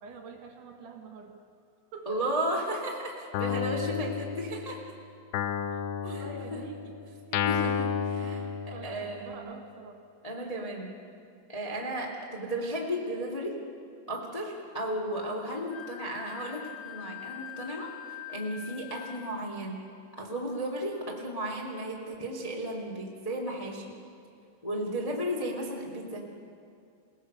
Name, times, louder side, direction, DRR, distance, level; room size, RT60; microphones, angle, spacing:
voice 1, 0.0-1.4 1.9-2.2 5.7-7.0 7.3-7.7 8.3-10.0 10.6-10.7 26.1-26.2, right 4 dB, 65° right, 3 dB, 3.6 m, -46 dB
voice 2, 2.0-4.8 6.2-6.6 7.4-8.5 8.8-9.4 10.2-10.9 11.5-13.5 14.1-17.9 18.3-19.8 20.2-23.9 24.6-26.2, right 1 dB, 15° left, -2 dB, 1.2 m, -34 dB
Guitar, 3.3-4.8 5.3-9.2, left 7 dB, 80° left, 3.1 m, -32 dB
Wind instrument woodwind instrument, 15.7-19.4, left 11 dB, 60° left, 3.2 m, -44 dB
29.0 x 18.5 x 6.7 m, 2.5 s
omnidirectional pair, 5.5 m